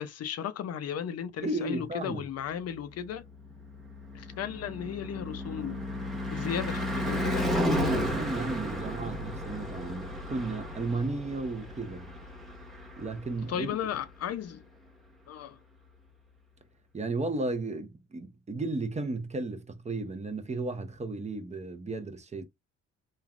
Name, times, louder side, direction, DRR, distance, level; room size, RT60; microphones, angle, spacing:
voice 1, 0.0-3.2 4.1-5.8 6.3-7.5 13.5-14.6 15.3-15.6, left 9 dB, 55° left, 0.5 m, -35 dB
voice 2, 1.4-2.2 7.6-12.2 13.0-13.7 16.9-22.4, right 2 dB, 25° right, 0.6 m, -34 dB
Car passing by / Truck / Engine, 3.4-13.7, equal, ahead, 1.0 m, -33 dB
3.2 x 2.3 x 2.4 m
cardioid pair, 90°, 30 cm